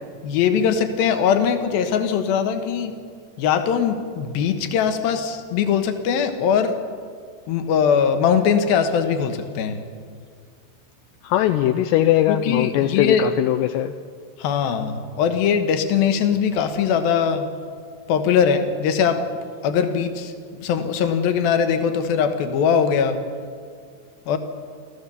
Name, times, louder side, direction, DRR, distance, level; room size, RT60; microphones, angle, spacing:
voice 1, 0.2-2.9 3.4-6.8 7.5-9.8 12.3-13.2 14.4-17.5 18.1-19.3 19.6-23.2 24.3-24.4, left 7 dB, 65° left, 7 dB, 2.9 m, -21 dB
voice 2, 11.2-14.0, left 12 dB, 80° left, 8 dB, 2.7 m, -20 dB
28.5 x 14.0 x 7.0 m, 2.1 s
omnidirectional pair, 5.0 m